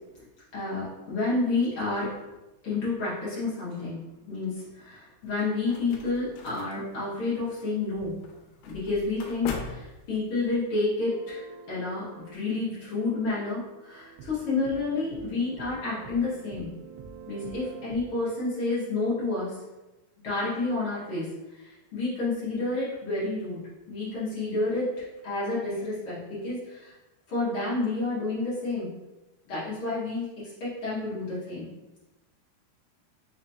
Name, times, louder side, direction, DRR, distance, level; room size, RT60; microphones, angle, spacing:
voice 1, 0.5-2.1 2.6-8.1 8.6-11.4 11.7-16.7 17.3-19.6 20.2-23.6 23.9-26.9 27.3-28.9 29.5-31.7, left 3 dB, 50° left, -10 dB, 1.7 m, -30 dB
sound 1, 5.2-10.6, left 4 dB, 80° left, 2.5 m, -42 dB
sound 2, 11.0-18.2, right 6 dB, 90° right, 2.7 m, -47 dB
6.0 x 3.0 x 2.8 m, 1.0 s
omnidirectional pair, 4.6 m